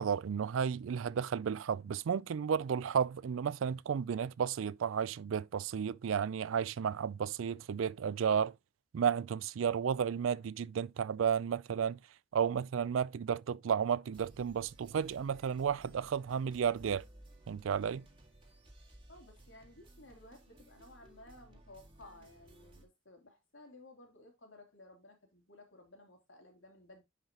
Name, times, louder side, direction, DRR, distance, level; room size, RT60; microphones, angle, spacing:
voice 1, 0.0-8.5 8.9-12.0 12.3-17.0 17.5-18.0, right 7 dB, 80° right, 0.4 m, -33 dB
sound 1, 14.1-22.8, right 1 dB, 25° right, 1.9 m, -58 dB
voice 2, 19.1-27.0, left 2 dB, 70° left, 3.0 m, -57 dB
10.5 x 5.1 x 2.9 m
head